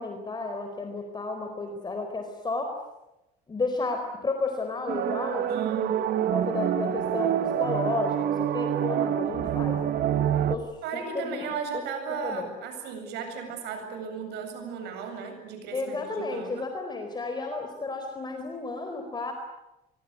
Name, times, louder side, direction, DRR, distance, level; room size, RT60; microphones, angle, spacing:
voice 1, 0.0-2.8 3.5-5.5 5.7-5.9 6.3-9.8 10.5-11.4 12.2-12.5 15.7-19.3, left 3 dB, 25° left, 5 dB, 4.3 m, -32 dB
sound 1, 4.9-10.6, right 10 dB, 65° right, 1.6 m, -26 dB
voice 2, 5.5-6.0 10.8-16.7, right 6 dB, 85° right, 6 dB, 7.9 m, -35 dB
25.0 x 23.5 x 9.7 m, 0.93 s
cardioid pair, 110°, 17 cm